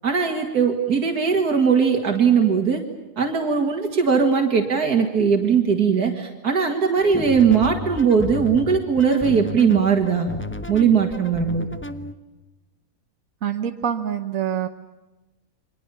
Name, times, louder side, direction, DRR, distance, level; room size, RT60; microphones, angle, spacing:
voice 1, 0.0-2.8 3.2-10.3 10.7-11.6, right 6 dB, 80° right, 3 dB, 2.6 m, -19 dB
sound 1, 7.0-12.1, left 2 dB, 10° left, 1.1 m, -33 dB
voice 2, 13.4-14.7, right 9 dB, 60° right, 6 dB, 1.5 m, -25 dB
29.5 x 24.0 x 7.2 m, 1.1 s
omnidirectional pair, 1.6 m